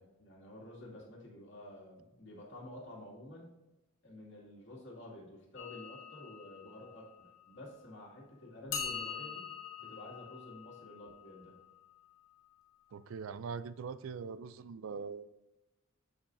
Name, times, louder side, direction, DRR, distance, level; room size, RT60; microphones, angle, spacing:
voice 1, 0.0-3.5 4.0-9.5 9.8-11.6, left 1 dB, 60° left, -3 dB, 2.3 m, -50 dB
sound 1, 5.6-8.0 8.7-12.6, left 6 dB, 90° left, 1.6 m, -45 dB
voice 2, 12.9-15.3, right 5 dB, 80° right, 15 dB, 0.4 m, -42 dB
7.8 x 7.1 x 2.6 m, 0.99 s
head